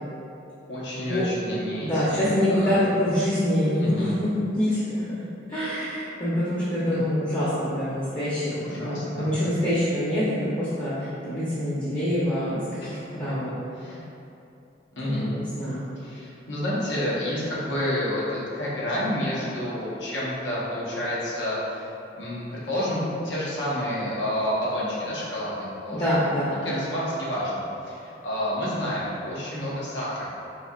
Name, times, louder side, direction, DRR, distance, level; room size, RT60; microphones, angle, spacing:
voice 1, 0.7-2.8 3.8-4.2 6.9-7.0 8.5-9.3 12.8-13.2 13.8-14.0 14.9-15.3 16.0-21.9 22.1-26.2 26.6-30.3, left 1 dB, 85° left, -7 dB, 0.9 m, -30 dB
voice 2, 1.8-4.8 5.5-10.2 10.5-11.0 11.2-13.5 15.0-15.9 25.9-26.8, equal, 25° left, -10 dB, 0.6 m, -25 dB
4.1 x 2.6 x 2.4 m, 2.7 s
head